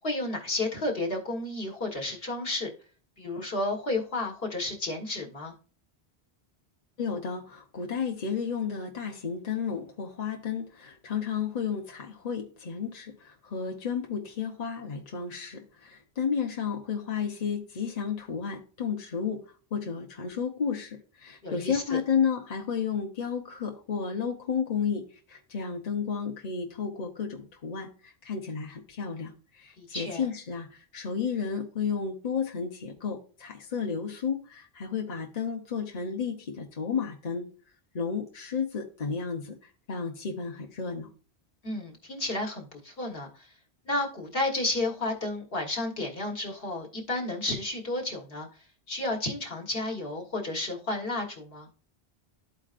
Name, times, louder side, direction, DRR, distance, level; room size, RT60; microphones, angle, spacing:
voice 1, 0.0-2.7 3.2-5.5 21.4-22.0 29.8-30.2 41.6-43.3 43.8-48.5 48.9-51.7, left 2 dB, 60° left, 1.6 m, -32 dB
voice 2, 7.0-37.5 37.9-41.1, left 6 dB, 40° left, 0.9 m, -32 dB
13.0 x 4.4 x 2.5 m
omnidirectional pair, 1.1 m